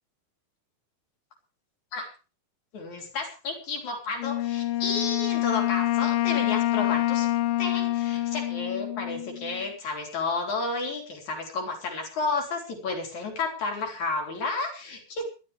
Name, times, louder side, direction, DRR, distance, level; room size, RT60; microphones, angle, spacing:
voice 1, 2.7-7.3 7.6-15.2, left 3 dB, 50° left, 1 dB, 4.9 m, -31 dB
Wind instrument woodwind instrument, 4.2-9.6, left 15 dB, 75° left, 2.5 m, -26 dB
22.5 x 12.5 x 3.5 m, 0.34 s
omnidirectional pair, 4.3 m